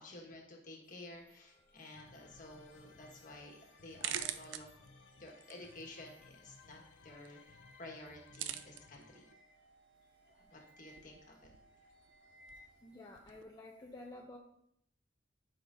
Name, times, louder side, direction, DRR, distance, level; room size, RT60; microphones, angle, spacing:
voice 1, 0.0-4.7 5.2-9.2 10.3-11.5, left 2 dB, 45° left, 0 dB, 1.5 m, -52 dB
sound 1, 0.8-12.9, equal, 10° right, 3.1 m, -65 dB
sound 2, 1.9-9.3, left 5 dB, 90° left, 0.6 m, -61 dB
sound 3, 2.2-13.4, right 10 dB, 80° right, 0.4 m, -49 dB
voice 2, 12.8-14.4, left 2 dB, 20° left, -1 dB, 0.6 m, -51 dB
11.5 x 5.0 x 2.6 m, 0.72 s
head